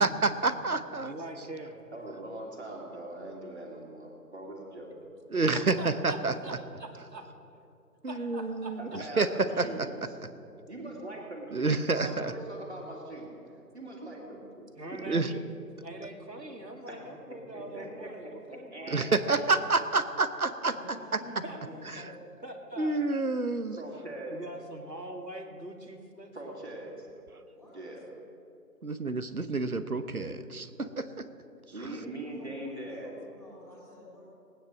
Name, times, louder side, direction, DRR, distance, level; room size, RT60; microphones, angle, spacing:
voice 1, 0.0-1.1 5.3-6.3 8.0-9.3 9.6-9.9 11.5-12.3 15.0-15.3 18.9-20.7 22.8-23.8 28.8-31.3, right 3 dB, 60° right, 11 dB, 1.0 m, -28 dB
voice 2, 1.0-1.9 5.8-7.3 8.1-8.8 14.8-15.4 15.8-19.0 21.4-21.6 22.4-23.0 24.0-26.5, right 1 dB, 85° right, 3 dB, 2.6 m, -43 dB
voice 3, 1.9-4.9 8.8-10.2 10.7-13.4 13.7-14.7 16.9-17.0 17.5-18.3 18.7-19.4 23.7-24.4 26.3-27.1 27.7-28.0 31.7-33.2, right 1 dB, 40° right, -2 dB, 2.7 m, -41 dB
voice 4, 20.7-22.2 27.5-27.9 31.8-31.9 32.3-34.2, equal, 10° left, -19 dB, 2.6 m, -49 dB
19.5 x 9.8 x 6.2 m, 2.6 s
figure-of-eight pair, 175°, 49 cm